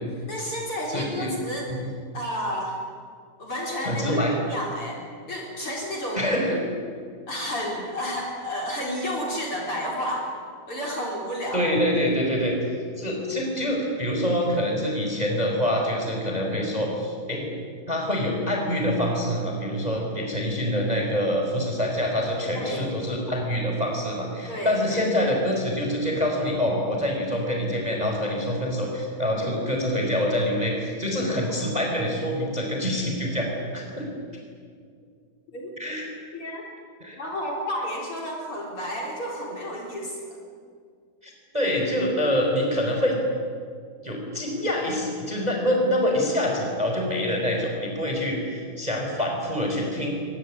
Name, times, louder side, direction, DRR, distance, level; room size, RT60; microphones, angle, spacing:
voice 1, 0.3-1.7 2.1-2.8 3.4-5.0 5.3-6.2 7.3-10.3 10.7-11.7 22.5-22.8 24.5-25.0 35.5-35.7 36.3-36.6 37.2-40.4, equal, 35° left, -2 dB, 4.5 m, -31 dB
voice 2, 0.9-1.4 1.7-1.9 3.8-4.3 6.1-6.6 11.5-12.6 13.0-17.5 17.9-34.0 35.8-36.1 37.0-37.2 41.2-43.2 44.0-50.1, equal, 10° right, 1 dB, 4.1 m, -26 dB
23.5 x 20.0 x 9.9 m, 2.1 s
omnidirectional pair, 4.7 m